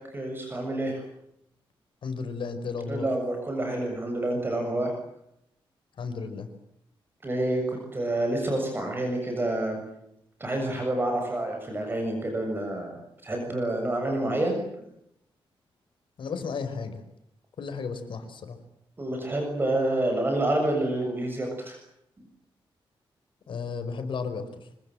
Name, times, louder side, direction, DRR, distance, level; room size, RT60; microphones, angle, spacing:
voice 1, 0.1-1.0 2.9-4.9 7.2-9.8 10.4-14.6 19.0-21.8, right 1 dB, 25° right, 3 dB, 7.0 m, -28 dB
voice 2, 2.0-3.1 6.0-6.5 16.2-17.0 17.6-18.6 23.5-24.5, left 5 dB, 60° left, 9 dB, 5.1 m, -33 dB
26.0 x 25.5 x 7.8 m, 0.77 s
wide cardioid pair, 160°, 9 cm